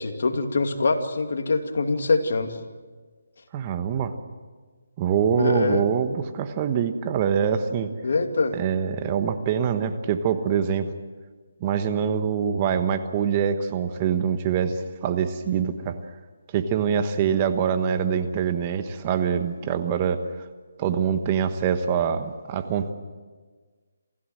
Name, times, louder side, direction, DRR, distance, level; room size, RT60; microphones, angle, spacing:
voice 1, 0.0-2.6 5.4-5.9 8.0-8.6, left 3 dB, 65° left, 6 dB, 2.4 m, -24 dB
voice 2, 3.5-4.1 5.0-7.9 8.5-10.9 11.6-16.0 16.5-20.2 20.8-22.9, right 7 dB, 25° right, 9 dB, 1.2 m, -24 dB
28.0 x 15.5 x 7.8 m, 1.5 s
hypercardioid pair, 160°, 0 cm